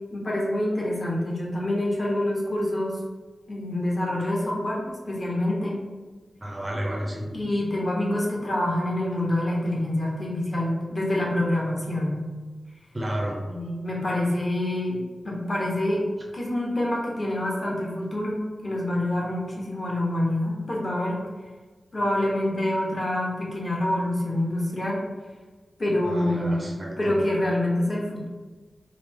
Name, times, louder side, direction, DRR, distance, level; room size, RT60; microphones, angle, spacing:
voice 1, 0.1-3.0 3.5-5.8 7.3-12.2 13.5-15.0 15.2-16.0 16.3-21.2 21.9-25.0 25.8-26.7 27.0-28.3, left 1 dB, 35° left, -2 dB, 0.9 m, -26 dB
voice 2, 6.4-7.3 12.9-13.4 26.0-27.3, right 1 dB, 20° right, -2 dB, 0.6 m, -31 dB
4.8 x 2.0 x 3.5 m, 1.3 s
wide cardioid pair, 130°, 0 cm